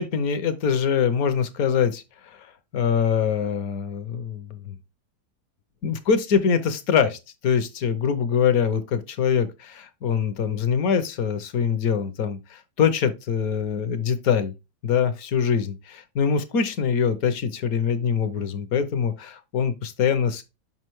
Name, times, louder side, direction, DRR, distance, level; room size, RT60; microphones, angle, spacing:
voice 1, 0.0-4.7 5.8-14.5 14.8-20.4, left 7 dB, 60° left, 1.1 m, -24 dB
5.7 x 5.6 x 3.0 m
omnidirectional pair, 2.0 m